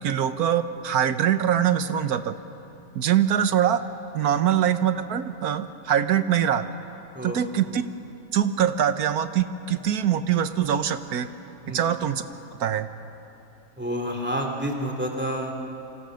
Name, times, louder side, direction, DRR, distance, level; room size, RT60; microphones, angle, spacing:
voice 1, 0.0-2.3 2.9-3.8 4.1-6.6 7.2-7.8 8.3-11.3 11.7-12.2 12.6-12.9, right 9 dB, 70° right, 10 dB, 1.4 m, -23 dB
voice 2, 13.8-15.5, equal, 5° right, 2 dB, 2.7 m, -29 dB
27.0 x 27.0 x 6.4 m, 2.9 s
omnidirectional pair, 1.7 m